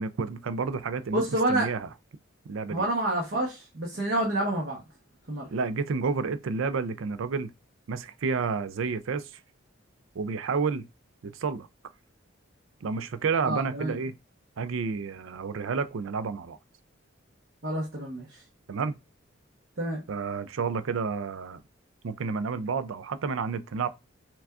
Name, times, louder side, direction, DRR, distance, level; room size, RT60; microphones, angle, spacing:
voice 1, 0.0-1.9 2.5-2.8 5.5-7.5 7.9-9.3 10.1-10.9 11.2-11.7 12.8-14.1 14.6-16.6 18.7-19.0 20.1-21.6 22.0-23.9, right 5 dB, 75° right, 0.4 m, -30 dB
voice 2, 1.1-1.7 2.7-4.8 5.3-5.5 13.4-14.0 17.6-18.4 19.8-20.0, right 1 dB, 55° right, 1.0 m, -28 dB
5.8 x 2.3 x 2.4 m
head